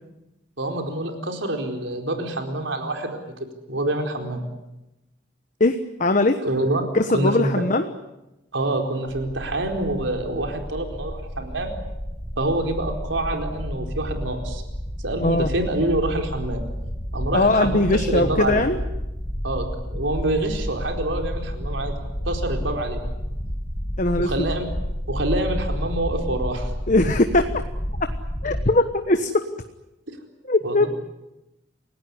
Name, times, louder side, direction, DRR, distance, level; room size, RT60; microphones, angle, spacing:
voice 1, 0.6-4.4 6.4-6.9 7.1-7.6 8.5-11.7 12.4-14.6 15.0-16.6 17.1-18.6 19.4-22.0 22.2-23.0 24.2-24.7 25.1-26.7 30.1-30.2 30.6-30.9, right 1 dB, 80° right, 3 dB, 4.4 m, -26 dB
voice 2, 5.6-6.4 6.9-7.9 15.2-15.5 17.3-18.8 24.0-24.3 26.9-27.5 28.4-29.4 30.5-30.9, left 2 dB, 40° left, 8 dB, 1.2 m, -20 dB
sound 1, 9.3-28.7, equal, 20° left, 1.8 m, -30 dB
29.0 x 18.0 x 9.8 m, 0.97 s
head